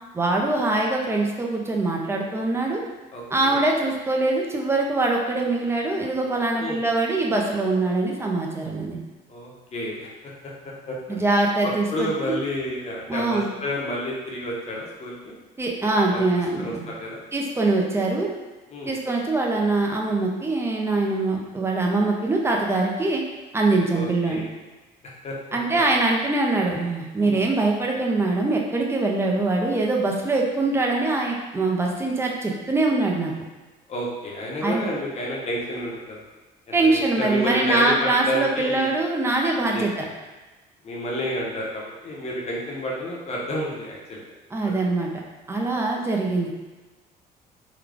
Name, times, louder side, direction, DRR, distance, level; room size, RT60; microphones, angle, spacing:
voice 1, 0.1-2.8 3.3-9.0 11.1-12.3 13.1-13.5 15.6-16.9 17.3-18.3 18.8-23.2 23.5-24.4 25.5-33.3 34.6-34.9 36.7-40.0 44.5-45.2 45.5-46.5, right 2 dB, 15° right, -1 dB, 0.6 m, -23 dB
voice 2, 3.1-3.6 6.6-6.8 9.3-10.1 10.9-11.2 11.6-15.3 16.1-16.2 16.6-17.2 18.7-18.9 23.9-24.5 25.2-25.3 27.2-27.5 33.9-36.2 36.7-36.8 37.2-38.9 39.7-40.1 40.8-44.2, equal, 40° left, -3 dB, 0.9 m, -30 dB
3.8 x 2.3 x 3.4 m, 1.2 s
cardioid pair, 110°, 17 cm